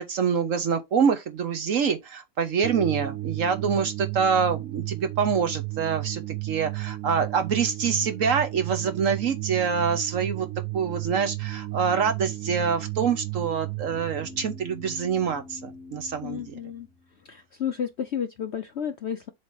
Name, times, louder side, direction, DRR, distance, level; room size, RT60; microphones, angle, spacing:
voice 1, 0.0-10.5 10.7-16.4, right 6 dB, 55° right, 1.1 m, -26 dB
sound 1, 2.6-15.7, right 19 dB, 75° right, 0.8 m, -34 dB
sound 2, 13.7-17.4, left 3 dB, 40° left, 2.2 m, -46 dB
voice 2, 16.2-16.9 17.2-19.3, left 8 dB, 70° left, 0.6 m, -32 dB
7.4 x 2.9 x 4.7 m
omnidirectional pair, 1.9 m